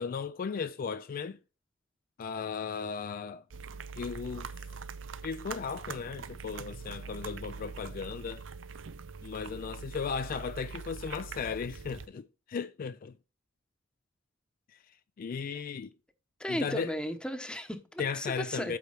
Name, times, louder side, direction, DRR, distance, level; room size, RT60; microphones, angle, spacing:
voice 1, 0.0-1.4 2.2-3.4 4.0-4.5 5.2-8.4 9.2-13.1 15.2-15.9 16.5-16.9 18.0-18.8, left 6 dB, 45° left, 0.3 m, -36 dB
sound 1, 3.5-12.1, right 5 dB, 70° right, 0.6 m, -43 dB
voice 2, 16.4-18.8, equal, 5° left, 0.9 m, -35 dB
8.4 x 4.5 x 5.6 m
head